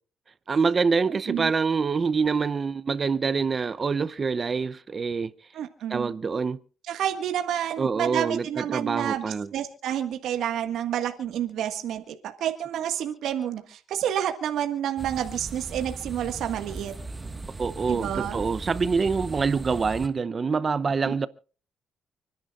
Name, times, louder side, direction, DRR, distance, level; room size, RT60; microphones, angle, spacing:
voice 1, 0.5-5.3 5.9-6.6 7.8-9.5 17.6-21.3, right 5 dB, 40° right, 0.7 m, -25 dB
voice 2, 5.5-6.1 6.9-9.3 9.5-16.9 17.9-18.4 21.0-21.3, right 10 dB, 80° right, 1.8 m, -29 dB
sound 1, 15.0-20.1, right 3 dB, 20° right, 1.6 m, -38 dB
30.0 x 10.5 x 2.5 m
cardioid pair, 90°, 0 cm